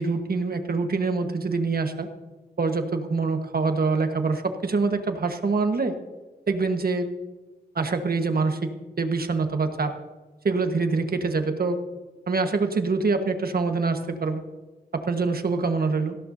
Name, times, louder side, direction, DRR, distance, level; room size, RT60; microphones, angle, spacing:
voice 1, 0.0-2.1 2.6-6.0 6.5-7.1 7.7-8.7 9.0-9.9 10.4-11.8 12.3-14.4 14.9-16.1, right 4 dB, 60° right, 6 dB, 1.4 m, -25 dB
18.0 x 15.0 x 2.7 m, 1.2 s
wide cardioid pair, 70°, 17 cm